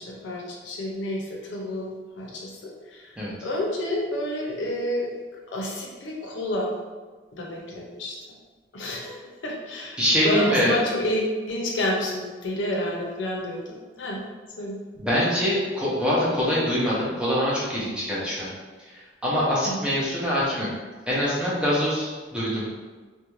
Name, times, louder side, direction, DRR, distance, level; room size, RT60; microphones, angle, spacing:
voice 1, 0.0-1.9 2.2-3.1 3.4-5.1 5.5-6.7 7.3-8.2 8.7-10.0 10.2-14.2 14.6-14.8 19.6-19.8, left 1 dB, 90° left, -2 dB, 0.6 m, -29 dB
voice 2, 10.0-10.8 15.0-18.5 18.8-20.7 21.1-22.6, equal, 5° right, -8 dB, 0.6 m, -24 dB
2.5 x 2.2 x 3.0 m, 1.4 s
head